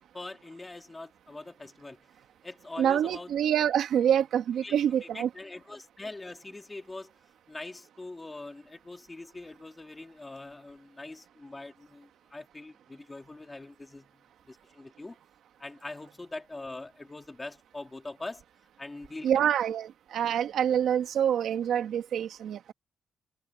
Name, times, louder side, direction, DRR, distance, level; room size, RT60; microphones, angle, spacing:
voice 1, 0.1-2.1 2.4-3.3 4.6-7.1 7.5-15.2 15.6-18.4 18.8-19.5, left 2 dB, 15° left, 2.6 m, -43 dB
voice 2, 2.8-5.3 19.2-22.7, right 9 dB, 75° right, 2.0 m, -26 dB
cardioid pair, 150°, 0 cm